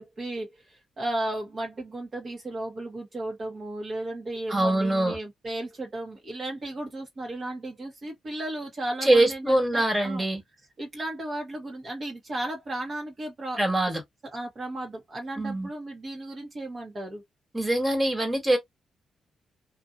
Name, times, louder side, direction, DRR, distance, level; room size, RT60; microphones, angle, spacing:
voice 1, 0.0-10.2 10.8-13.6 14.3-17.2, right 1 dB, 45° right, 1.1 m, -35 dB
voice 2, 4.5-5.2 9.0-10.4 13.6-14.0 15.4-15.7 17.5-18.6, right 1 dB, 20° right, 1.6 m, -23 dB
2.7 x 2.4 x 2.5 m
cardioid pair, 75°, 0 cm